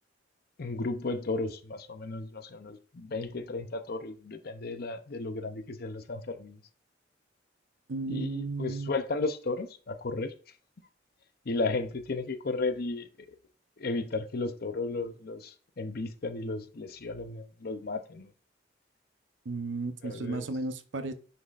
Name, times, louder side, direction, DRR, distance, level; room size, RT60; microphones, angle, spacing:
voice 1, 0.6-6.6 8.1-10.3 11.5-13.1 13.8-18.3 20.0-20.4, left 3 dB, 55° left, 0.6 m, -34 dB
voice 2, 7.9-8.9 19.4-21.1, right 3 dB, 85° right, 0.7 m, -34 dB
9.5 x 4.0 x 2.5 m
head